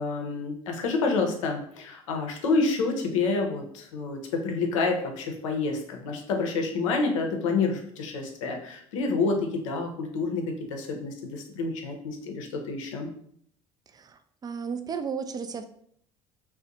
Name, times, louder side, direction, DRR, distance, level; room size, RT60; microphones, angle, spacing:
voice 1, 0.0-13.1, left 3 dB, 80° left, 3 dB, 0.6 m, -28 dB
voice 2, 13.9-15.6, right 6 dB, 25° right, 9 dB, 0.3 m, -34 dB
2.6 x 2.1 x 3.8 m, 0.66 s
hypercardioid pair, 70°, 16 cm